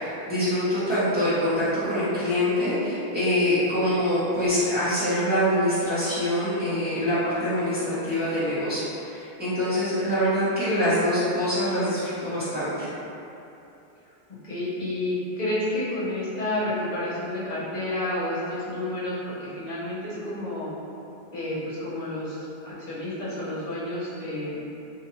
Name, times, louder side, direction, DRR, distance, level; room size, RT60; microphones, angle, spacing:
voice 1, 0.0-12.9, left 1 dB, 10° right, -15 dB, 1.0 m, -25 dB
voice 2, 14.4-20.7 21.3-22.4 22.6-24.6, left 1 dB, 40° left, -10 dB, 0.9 m, -30 dB
2.8 x 2.5 x 2.8 m, 2.8 s
omnidirectional pair, 1.1 m